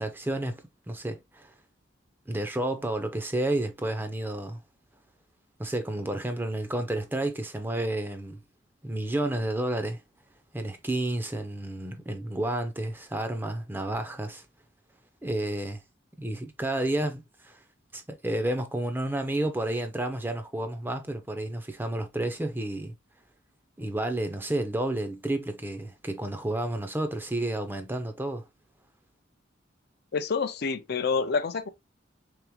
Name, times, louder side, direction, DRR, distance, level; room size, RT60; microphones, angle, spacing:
voice 1, 0.0-1.5 2.3-4.6 5.6-8.4 8.8-10.0 10.5-14.4 15.2-15.8 16.2-17.6 17.9-22.9 23.8-28.5, right 1 dB, 10° right, 0.5 m, -31 dB
voice 2, 30.1-31.7, left 5 dB, 55° left, 0.4 m, -27 dB
3.5 x 3.4 x 2.9 m
head